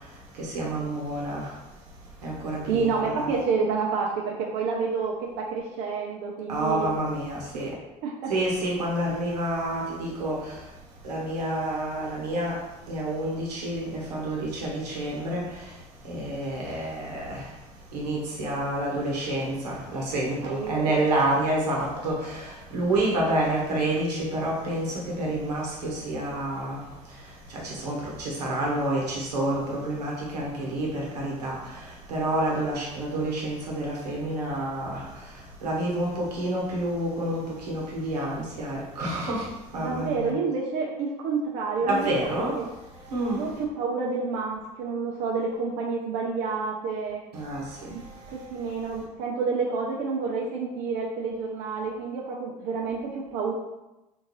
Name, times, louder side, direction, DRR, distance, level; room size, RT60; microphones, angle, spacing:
voice 1, 0.4-1.5 2.2-3.3 6.5-7.7 8.3-10.4 11.0-12.6 12.9-15.4 16.1-17.4 17.9-26.8 27.5-31.6 32.1-35.0 35.6-39.4 39.7-40.3 41.9-42.6 43.1-43.4 47.3-47.6, right 1 dB, 85° right, -3 dB, 0.9 m, -28 dB
voice 2, 2.7-6.9 8.0-8.3 20.4-20.8 39.8-42.3 42.6-42.7 43.3-47.2 47.9-48.0 48.3-53.5, right 4 dB, 65° right, -2 dB, 0.5 m, -29 dB
3.6 x 2.5 x 3.0 m, 0.98 s
hypercardioid pair, 70°, 20 cm